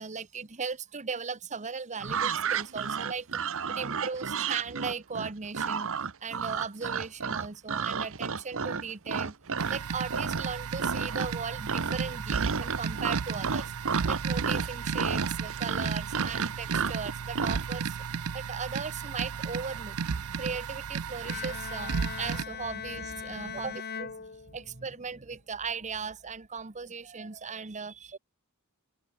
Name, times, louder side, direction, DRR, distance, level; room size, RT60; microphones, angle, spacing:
voice 1, 0.0-3.3 3.7-5.9 6.2-13.8 14.0-18.0 18.3-20.0 20.4-28.2, right 5 dB, 35° right, 1.1 m, -37 dB
sound 1, 2.0-9.8 10.1-10.5 10.8-11.4 11.7-17.6, right 5 dB, 65° right, 1.3 m, -31 dB
sound 2, 9.6-22.4, right 6 dB, 85° right, 0.6 m, -34 dB
Bowed string instrument, 21.3-25.0, left 6 dB, 45° left, 1.7 m, -40 dB
open air
head